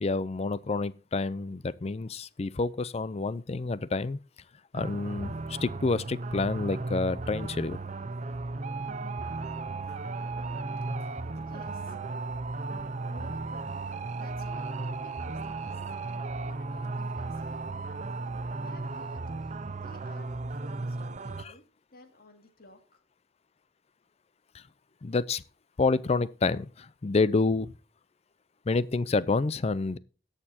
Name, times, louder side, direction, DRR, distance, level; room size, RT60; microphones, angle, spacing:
voice 1, 0.0-4.2 4.7-5.3 5.6-7.8 21.4-21.5 25.0-25.4 25.8-27.7 28.7-30.0, left 3 dB, 35° left, 0.5 m, -28 dB
sound 1, 4.7-21.4, right 3 dB, 40° right, 0.6 m, -35 dB
voice 2, 11.0-12.0 13.0-13.8 14.2-15.7 16.4-17.8 18.6-21.6 21.9-23.0, left 1 dB, 60° left, 2.2 m, -54 dB
18.0 x 6.7 x 2.8 m
head